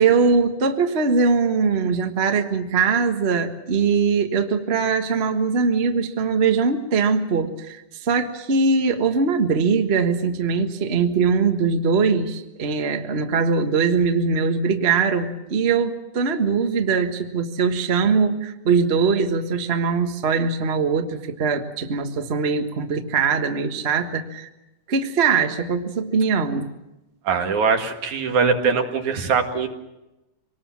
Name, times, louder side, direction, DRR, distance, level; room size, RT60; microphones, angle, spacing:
voice 1, 0.0-24.5 24.9-26.7, right 5 dB, 40° right, 6 dB, 0.9 m, -21 dB
voice 2, 27.2-29.7, right 5 dB, 70° right, 4 dB, 3.3 m, -21 dB
25.5 x 20.0 x 7.4 m, 0.97 s
omnidirectional pair, 3.6 m